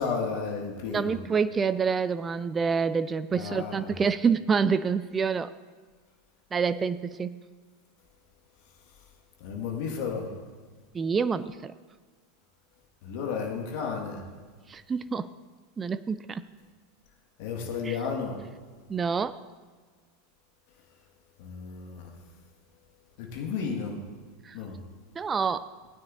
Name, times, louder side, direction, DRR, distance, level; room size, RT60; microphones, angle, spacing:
voice 1, 0.0-1.2 3.3-3.9 9.4-10.3 13.0-14.2 17.4-18.4 21.4-22.1 23.2-24.0 24.5-24.8, left 5 dB, 55° left, 1 dB, 1.8 m, -33 dB
voice 2, 0.9-5.5 6.5-7.4 10.9-11.7 14.7-15.3 15.8-16.4 17.8-18.0 18.9-19.4 24.4-24.6 25.2-25.7, right 5 dB, 20° right, 14 dB, 0.3 m, -27 dB
18.0 x 9.5 x 2.7 m, 1.5 s
figure-of-eight pair, 85°, 0 cm